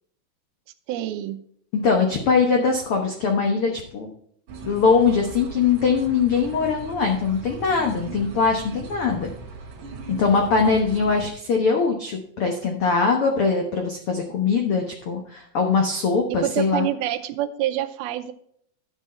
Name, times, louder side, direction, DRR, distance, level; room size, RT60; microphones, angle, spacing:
voice 1, 0.9-1.4 16.3-18.3, right 12 dB, 80° right, 9 dB, 2.6 m, -26 dB
voice 2, 1.8-4.1 4.6-9.3 10.1-16.9, left 5 dB, 85° left, 2 dB, 1.2 m, -22 dB
sound 1, 4.5-11.2, right 4 dB, 60° right, 1.5 m, -38 dB
11.5 x 6.3 x 4.3 m, 0.66 s
omnidirectional pair, 4.4 m